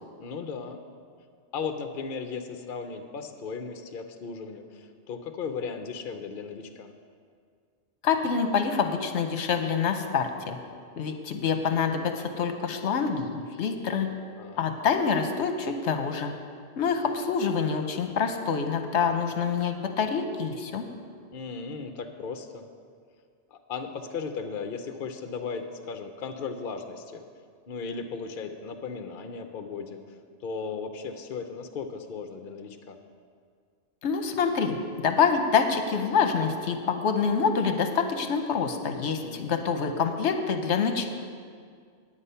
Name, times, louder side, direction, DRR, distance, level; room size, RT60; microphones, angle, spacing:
voice 1, 0.2-0.8 1.5-6.9 14.4-14.7 21.3-22.7 23.5-27.2 27.7-30.0 30.4-33.0 39.2-39.6, left 5 dB, 55° left, 6 dB, 0.8 m, -36 dB
voice 2, 8.0-10.6 11.0-14.1 14.6-16.3 16.8-20.8 34.0-41.1, left 6 dB, 70° left, 6 dB, 1.1 m, -26 dB
9.8 x 8.9 x 5.6 m, 2.1 s
omnidirectional pair, 1.2 m